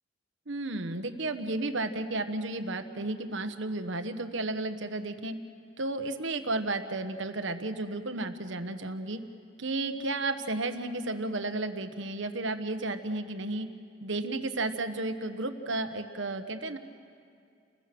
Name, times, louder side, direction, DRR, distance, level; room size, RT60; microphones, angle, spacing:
voice 1, 0.5-5.4 5.8-9.2 9.6-13.7 14.0-16.8, right 2 dB, 65° right, 8 dB, 1.3 m, -33 dB
30.0 x 21.5 x 6.1 m, 2.4 s
head